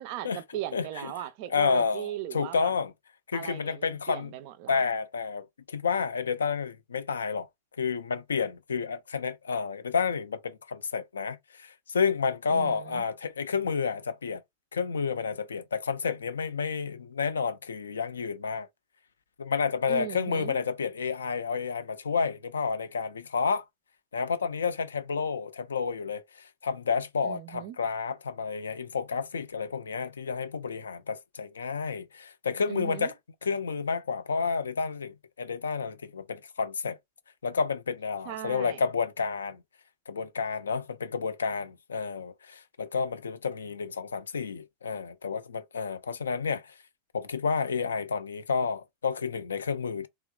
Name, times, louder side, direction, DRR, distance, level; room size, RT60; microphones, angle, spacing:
voice 1, 0.0-2.7 3.3-4.8 12.5-13.1 19.9-20.6 27.2-27.8 32.7-33.1 38.3-38.8, right 13 dB, 45° right, 0.4 m, -38 dB
voice 2, 0.7-1.1 1.5-2.9 3.3-4.3 4.7-7.5 7.8-14.4 14.7-18.7 19.4-23.6 24.1-33.1 33.4-37.0 37.4-39.6 40.1-46.7 47.1-50.1, left 5 dB, 70° left, 0.3 m, -30 dB
2.9 x 2.3 x 2.2 m
figure-of-eight pair, 90°, 0 cm